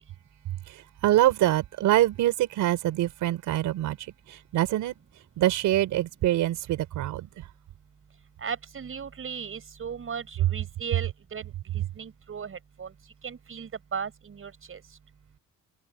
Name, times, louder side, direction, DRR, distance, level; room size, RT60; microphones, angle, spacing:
voice 1, 0.7-4.0 4.3-4.9 5.4-7.4, right 14 dB, 85° right, 4.9 m, -25 dB
voice 2, 8.4-12.9 13.2-14.8, right 6 dB, 45° right, 5.9 m, -37 dB
cardioid pair, 90°, 30 cm